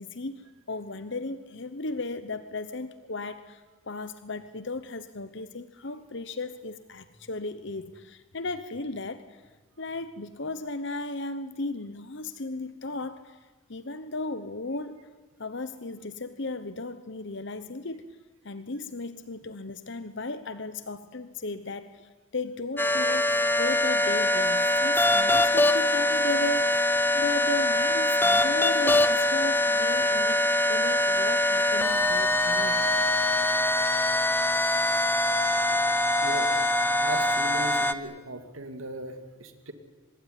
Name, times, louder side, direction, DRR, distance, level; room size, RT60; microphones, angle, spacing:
voice 1, 0.0-9.4 9.8-13.4 13.7-15.1 15.4-18.1 18.4-23.3 23.6-32.9, left 2 dB, 55° left, 12 dB, 1.0 m, -36 dB
sound 1, 22.8-37.9, left 1 dB, 10° left, 0.9 m, -23 dB
voice 2, 36.2-36.5 37.0-39.7, right 1 dB, 70° right, 8 dB, 2.6 m, -37 dB
25.0 x 21.0 x 9.9 m, 1.3 s
head